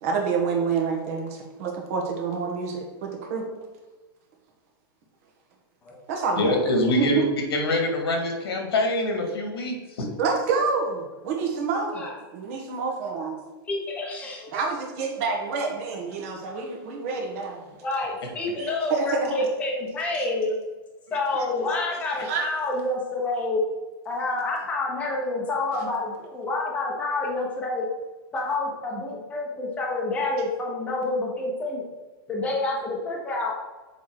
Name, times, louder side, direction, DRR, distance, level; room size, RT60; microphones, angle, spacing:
voice 1, 0.0-3.5 6.1-6.6 7.0-7.3 10.2-12.0 12.3-13.4 14.5-17.6 18.6-19.3 22.2-22.5, right 4 dB, 35° right, 1 dB, 1.4 m, -27 dB
voice 2, 6.4-7.2 7.5-10.1, left 1 dB, 85° left, 3 dB, 2.0 m, -24 dB
voice 3, 13.7-14.6 17.8-20.6 21.1-23.6 24.0-27.9 28.3-31.8 32.3-33.6, left 2 dB, 10° left, -2 dB, 1.1 m, -28 dB
7.0 x 4.4 x 4.8 m, 1.2 s
supercardioid pair, 175°, 13 cm